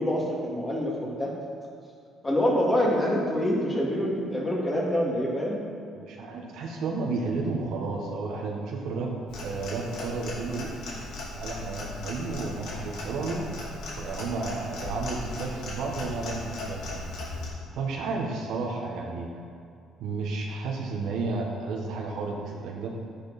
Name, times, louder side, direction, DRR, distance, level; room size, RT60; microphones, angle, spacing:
voice 1, 0.0-1.3 2.2-5.6, equal, 15° left, -3 dB, 2.5 m, -26 dB
voice 2, 5.9-9.1 9.4-10.7 11.3-13.5 14.0-17.1 17.7-19.3 20.0-22.9, right 3 dB, 75° right, -1 dB, 1.4 m, -32 dB
Clock, 9.3-17.5, left 2 dB, 80° left, 2.9 m, -37 dB
10.5 x 9.8 x 4.3 m, 2.4 s
cardioid pair, 115°, 0 cm